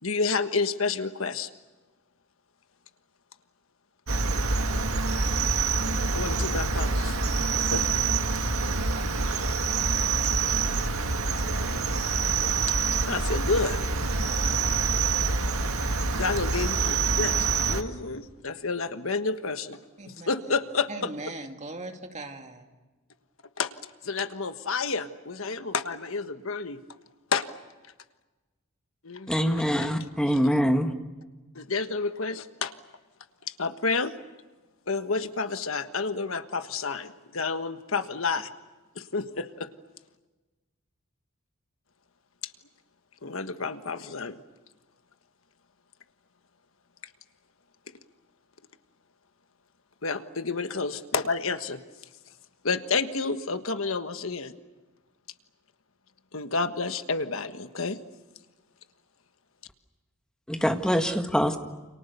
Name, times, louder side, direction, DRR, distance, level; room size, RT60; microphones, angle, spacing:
voice 1, 0.0-1.5 6.1-7.2 7.6-8.0 13.1-13.8 16.1-19.8 20.3-20.9 23.6-23.7 24.0-26.8 27.3-27.5 29.0-29.9 31.5-32.7 33.5-34.1 34.9-38.5 38.9-39.7 42.4-42.5 43.2-44.4 50.0-51.8 52.6-54.5 56.3-58.0, left 4 dB, 75° left, 1.5 m, -30 dB
Cricket, 4.1-17.8, right 4 dB, 90° right, 2.0 m, -26 dB
voice 2, 20.0-20.6 20.9-22.7, right 2 dB, 35° right, 2.4 m, -39 dB
voice 3, 29.3-30.9 60.5-61.6, equal, 5° left, 1.9 m, -24 dB
29.5 x 28.0 x 6.9 m
head